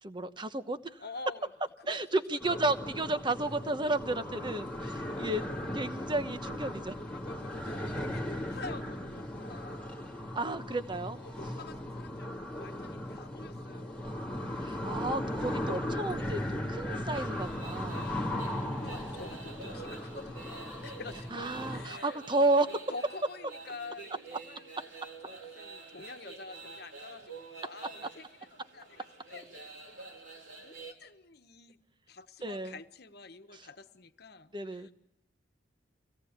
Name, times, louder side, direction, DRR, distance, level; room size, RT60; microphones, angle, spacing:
voice 1, 0.0-1.0 1.9-5.4 5.7-6.9 10.3-11.2 14.6-18.0 21.3-22.8 32.4-32.7 34.5-34.9, right 2 dB, 25° right, 10 dB, 1.0 m, -32 dB
voice 2, 1.0-1.5 1.8-2.9 3.4-3.5 4.8-5.3 7.0-10.0 11.2-12.3 12.6-14.2 17.9-22.2 22.9-24.7 25.2-28.2 28.5-30.1 30.6-31.8 32.1-34.9, left 3 dB, 55° left, 8 dB, 1.3 m, -48 dB
sound 1, 2.4-21.8, left 1 dB, 5° left, 1.9 m, -37 dB
sound 2, 17.1-30.9, right 3 dB, 85° right, 3.8 m, -48 dB
24.5 x 17.5 x 8.2 m, 0.86 s
head